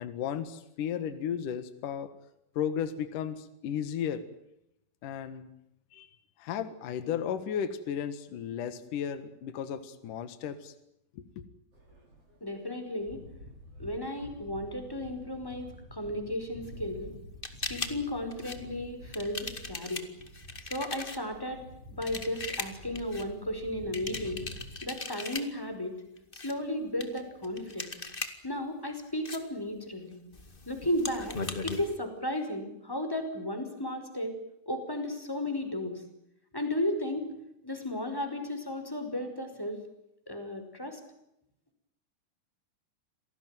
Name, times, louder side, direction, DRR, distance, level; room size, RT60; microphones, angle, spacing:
voice 1, 0.0-2.1 2.6-4.3 5.0-5.5 5.9-6.1 6.4-10.7 11.2-11.4, left 8 dB, 65° left, 11 dB, 3.0 m, -34 dB
sound 1, 11.7-24.9, equal, 40° right, 7.1 m, -49 dB
voice 2, 12.4-13.2 13.8-17.1 17.7-20.1 20.6-24.4 24.8-25.9 26.3-27.9 28.4-30.2 30.6-31.4 31.6-34.4 34.6-36.0 36.5-37.3 37.6-39.8 40.3-41.0, left 1 dB, 5° left, 6 dB, 5.0 m, -34 dB
sound 2, 17.4-18.0 18.3-18.6 19.1-21.2 22.0-23.2 23.9-25.5 26.2-26.5 27.0-28.3 29.2-29.4 30.3-32.0, left 3 dB, 20° left, 1.4 m, -38 dB
28.0 x 18.5 x 9.2 m, 0.81 s
omnidirectional pair, 4.1 m